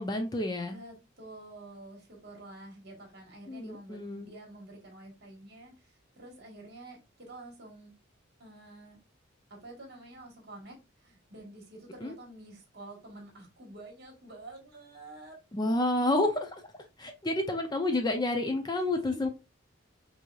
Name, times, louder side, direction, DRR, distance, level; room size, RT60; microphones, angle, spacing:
voice 1, 0.0-0.8 3.5-4.3 12.0-12.1 15.5-16.6 17.0-19.3, left 2 dB, 20° left, 5 dB, 0.4 m, -29 dB
voice 2, 0.6-7.9 8.4-9.0 9.5-15.4 18.9-19.3, right 2 dB, 55° right, 0 dB, 1.3 m, -49 dB
4.5 x 2.7 x 2.3 m, 0.26 s
head